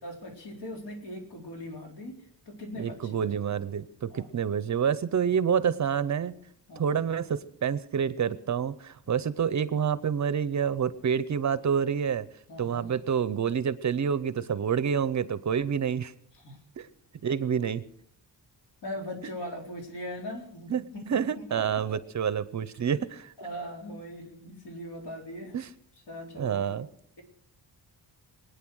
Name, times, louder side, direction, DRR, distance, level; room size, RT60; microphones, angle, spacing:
voice 1, 0.0-3.3 4.1-4.3 6.7-7.0 12.5-12.9 16.3-16.6 18.8-22.0 23.4-25.6 26.1-26.7, left 1 dB, 65° left, 1 dB, 4.2 m, -40 dB
voice 2, 2.8-6.3 6.8-12.3 12.6-16.1 16.8-16.9 17.2-17.8 20.7-23.3 25.5-25.7 26.4-26.9, right 7 dB, 40° right, 16 dB, 0.6 m, -28 dB
23.5 x 9.4 x 6.2 m, 0.68 s
wide cardioid pair, 165°, 44 cm